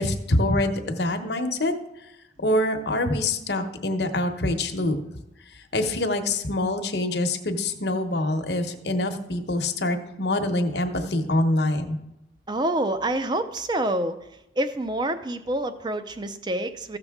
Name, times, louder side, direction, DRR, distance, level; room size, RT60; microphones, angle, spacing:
voice 1, 0.0-1.7 2.4-5.0 5.5-12.0, left 1 dB, 65° left, 5 dB, 0.9 m, -25 dB
voice 2, 12.5-14.3 14.6-17.0, right 1 dB, 25° right, 10 dB, 0.5 m, -27 dB
14.5 x 6.7 x 3.6 m, 0.88 s
head